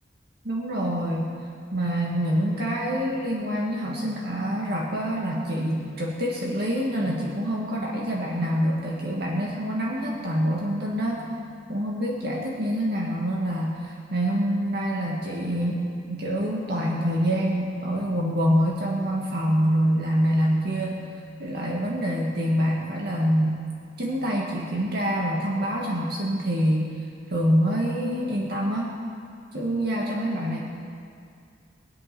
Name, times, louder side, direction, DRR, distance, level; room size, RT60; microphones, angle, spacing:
voice 1, 0.4-1.4 1.7-11.3 11.7-21.1 21.4-23.6 24.0-26.9 27.3-28.9 29.5-30.6, equal, 60° right, -3 dB, 1.9 m, -26 dB
22.5 x 8.5 x 6.1 m, 2.4 s
head